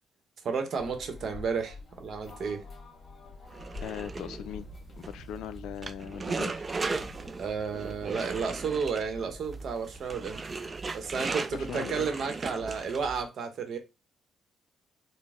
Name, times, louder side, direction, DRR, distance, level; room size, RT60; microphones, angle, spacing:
voice 1, 0.4-2.6 7.4-10.4 10.9-13.8, right 5 dB, 60° right, 0.9 m, -32 dB
sound 1, 0.8-10.3, left 3 dB, 40° left, 1.4 m, -49 dB
sound 2, 3.5-13.2, right 4 dB, 30° right, 0.3 m, -37 dB
voice 2, 3.8-4.7 5.0-6.6 11.5-12.1, left 10 dB, 85° left, 0.4 m, -39 dB
4.1 x 2.1 x 3.5 m
cardioid pair, 90°, 0 cm